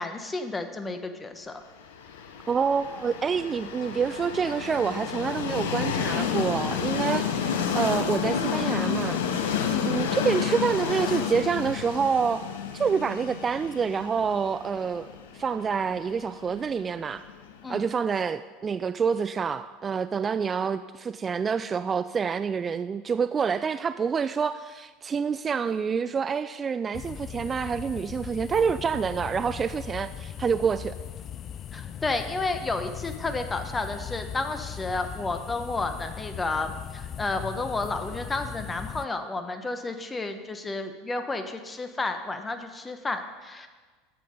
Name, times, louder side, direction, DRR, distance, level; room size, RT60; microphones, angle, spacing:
voice 1, 0.0-1.6 9.7-10.0 17.6-17.8 31.7-43.7, left 3 dB, 20° left, 7 dB, 1.1 m, -31 dB
Train, 2.0-17.8, left 7 dB, 70° left, 0.9 m, -30 dB
voice 2, 2.5-9.2 9.8-12.4 12.7-15.1 15.3-17.2 17.7-30.9, right 6 dB, 25° right, 12 dB, 0.3 m, -27 dB
sound 1, 26.9-39.1, left 9 dB, 40° left, 0.4 m, -39 dB
12.0 x 7.7 x 5.2 m, 1.4 s
figure-of-eight pair, 75°, 0 cm